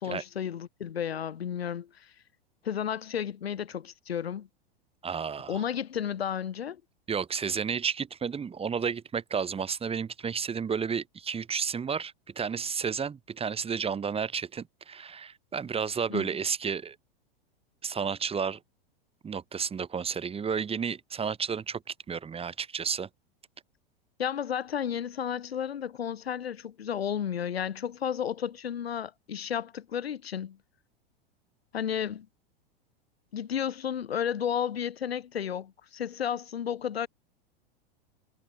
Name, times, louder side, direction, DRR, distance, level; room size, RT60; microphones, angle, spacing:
voice 1, 0.0-2.1 2.6-4.5 5.5-6.8 16.1-16.3 24.2-30.6 31.7-32.3 33.3-37.1, left 9 dB, 85° left, 5.4 m, -32 dB
voice 2, 5.0-5.6 7.1-16.9 17.8-18.6 19.2-21.8 22.1-23.1, right 6 dB, 20° right, 3.1 m, -32 dB
hypercardioid pair, 110°, 30 cm